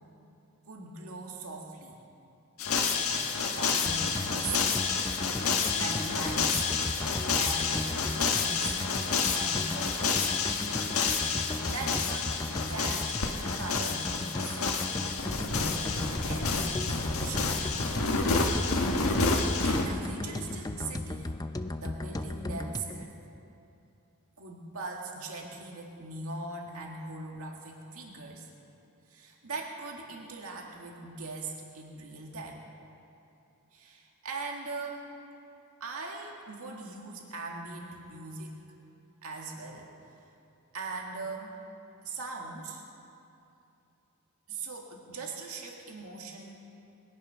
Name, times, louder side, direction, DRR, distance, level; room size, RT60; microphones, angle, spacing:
voice 1, 0.7-2.0 2.7-3.2 3.5-4.9 5.7-6.6 7.4-8.9 9.2-10.6 11.7-13.2 13.5-14.6 15.5-17.7 19.6-21.4 21.7-23.2 24.4-28.5 29.1-32.7 33.7-35.1 35.8-38.7 39.2-39.9 40.7-41.6 42.0-42.8 44.5-46.7, right 3 dB, 75° right, 0 dB, 2.0 m, -40 dB
sound 1, 2.6-19.9, left 4 dB, 75° left, 1.5 m, -29 dB
sound 2, 3.8-23.0, left 2 dB, 15° left, 0.5 m, -37 dB
21.0 x 11.0 x 5.7 m, 2.7 s
head